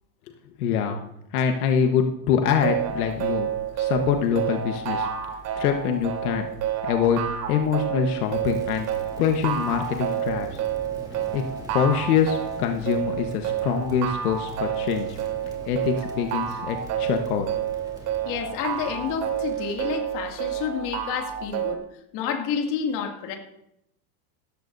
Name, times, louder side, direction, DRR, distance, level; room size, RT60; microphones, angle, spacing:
voice 1, 0.6-1.0 1.3-3.5 3.8-5.1 5.6-6.5 6.9-7.2 7.5-8.9 9.2-10.6 11.3-11.4 11.7-15.2 15.7-17.5, left 7 dB, 80° left, 4 dB, 1.4 m, -24 dB
sound 1, 2.5-21.8, right 9 dB, 45° right, 3.5 m, -29 dB
Crackle, 8.2-19.8, right 1 dB, 10° right, 2.8 m, -44 dB
voice 2, 18.2-21.8 22.1-23.4, left 7 dB, 45° left, 2 dB, 2.5 m, -29 dB
17.0 x 14.0 x 2.7 m, 0.79 s
supercardioid pair, 140°, 44 cm